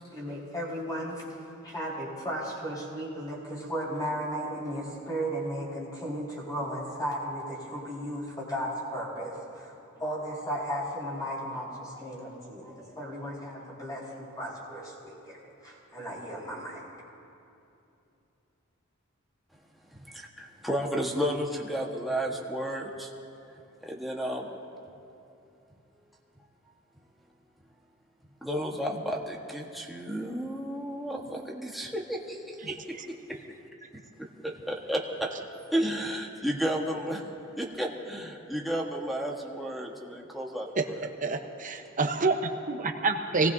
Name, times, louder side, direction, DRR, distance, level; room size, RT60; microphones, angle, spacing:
voice 1, 0.1-1.2 1.6-15.4 15.6-16.8, equal, 20° left, -5 dB, 4.5 m, -35 dB
voice 2, 19.9-23.1 23.8-24.5 28.4-33.4 34.4-35.3 35.7-37.2 37.6-41.1, equal, ahead, -2 dB, 1.3 m, -32 dB
voice 3, 32.7-33.1 40.8-40.9 41.2-43.5, right 3 dB, 40° right, 5 dB, 0.9 m, -28 dB
25.0 x 19.0 x 2.7 m, 2.8 s
head